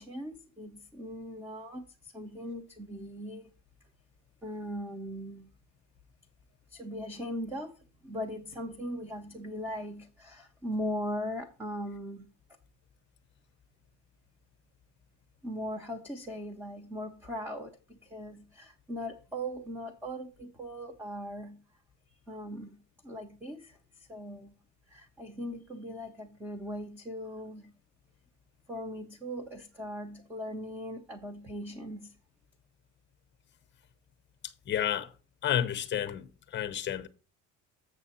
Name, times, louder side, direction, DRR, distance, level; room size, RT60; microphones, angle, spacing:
voice 1, 0.0-3.5 4.4-5.5 6.7-7.7 8.0-12.3 15.4-21.6 22.3-22.8 23.0-24.5 24.9-27.7 28.7-32.1, equal, 5° right, 0.6 m, -39 dB
voice 2, 34.7-35.1 35.4-37.1, left 10 dB, 30° left, 0.7 m, -31 dB
7.3 x 6.7 x 4.2 m
cardioid pair, 145°, 37 cm